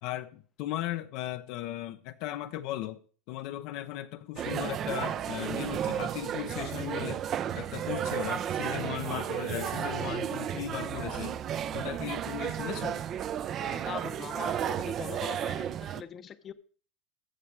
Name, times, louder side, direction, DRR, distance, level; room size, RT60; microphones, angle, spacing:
voice 1, 0.0-3.0 3.3-7.2 7.5-11.4 11.7-13.0, left 13 dB, 65° left, 0.7 m, -37 dB
sound 1, 4.4-16.0, right 10 dB, 40° right, 0.6 m, -33 dB
voice 2, 13.6-16.5, left 8 dB, 35° left, 0.8 m, -41 dB
14.5 x 6.8 x 4.8 m
supercardioid pair, 120°, 0 cm